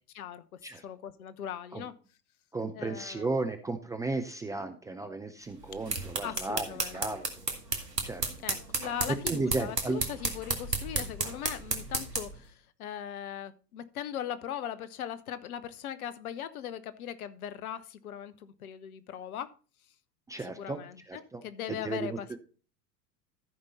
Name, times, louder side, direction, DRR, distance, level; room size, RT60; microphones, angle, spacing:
voice 1, 0.1-1.9 2.7-3.3 6.2-7.0 8.4-19.5 20.4-22.4, left 10 dB, 60° left, 14 dB, 1.1 m, -39 dB
voice 2, 2.5-6.7 6.9-7.3 8.0-8.3 9.3-10.0 20.3-20.8 21.1-21.4 21.7-22.4, right 3 dB, 5° right, 7 dB, 0.5 m, -34 dB
sound 1, 5.6-12.4, right 3 dB, 85° right, 1.8 m, -33 dB
13.5 x 5.3 x 4.1 m, 0.36 s
figure-of-eight pair, 90°, 47 cm